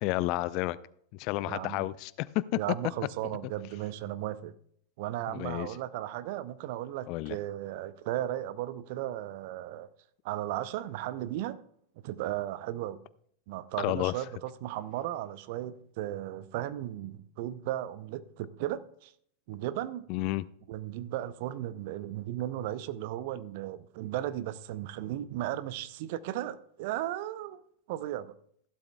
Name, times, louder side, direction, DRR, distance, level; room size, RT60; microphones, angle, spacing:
voice 1, 0.0-0.8 1.1-2.4 5.3-5.7 7.1-7.4 13.8-14.1 20.1-20.5, left 18 dB, 40° left, 0.4 m, -31 dB
voice 2, 1.5-1.8 2.5-4.5 5.0-9.9 10.2-11.6 12.0-13.0 13.5-19.1 19.5-20.1 20.7-27.6 27.9-28.3, right 13 dB, 50° right, 0.5 m, -35 dB
15.0 x 12.0 x 2.3 m
figure-of-eight pair, 90°, 0 cm